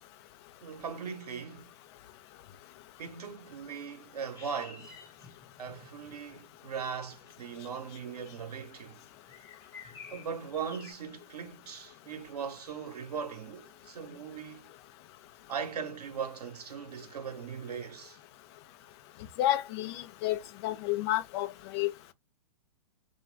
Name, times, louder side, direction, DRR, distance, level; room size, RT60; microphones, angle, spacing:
voice 1, 0.6-1.7 3.0-5.0 5.6-9.0 10.1-14.7 15.5-18.2, right 6 dB, 75° right, 0.9 m, -39 dB
sound 1, 4.3-10.9, left 5 dB, 15° left, 0.9 m, -53 dB
voice 2, 19.4-21.5 21.7-21.9, left 14 dB, 45° left, 0.5 m, -30 dB
2.3 x 2.3 x 3.3 m
hypercardioid pair, 115°, 20 cm